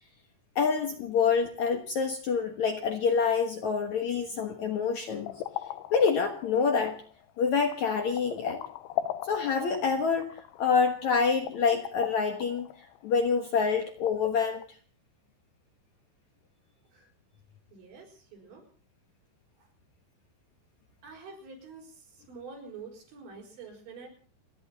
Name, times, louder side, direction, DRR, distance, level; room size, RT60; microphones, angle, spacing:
voice 1, 0.6-5.3 5.9-7.0 7.4-8.6 9.2-12.7 13.0-14.6, left 5 dB, 65° left, 6 dB, 1.9 m, -27 dB
sound 1, 5.1-14.7, left 12 dB, 85° left, 3.2 m, -39 dB
voice 2, 17.7-18.7 19.6-19.7 21.0-24.1, right 4 dB, 75° right, 1 dB, 7.4 m, -47 dB
30.0 x 10.5 x 4.0 m, 0.41 s
omnidirectional pair, 5.2 m